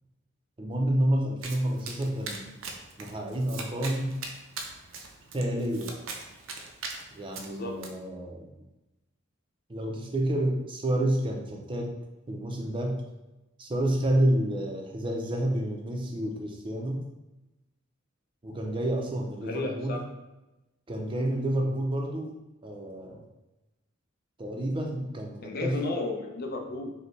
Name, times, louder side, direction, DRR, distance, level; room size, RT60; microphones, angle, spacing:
voice 1, 0.6-2.5 3.0-4.1 5.3-5.9 7.1-8.5 9.7-12.0 12.3-13.0 13.6-17.1 18.4-20.0 20.9-22.4 22.6-23.2 24.4-25.8, right 1 dB, 25° right, 1 dB, 0.5 m, -29 dB
Domestic sounds home sounds, 1.4-7.9, right 4 dB, 70° right, 0.5 m, -41 dB
voice 2, 7.4-7.8 19.4-20.0 25.4-26.9, left 3 dB, 45° left, 2 dB, 0.5 m, -33 dB
5.1 x 2.2 x 3.1 m, 1.0 s
head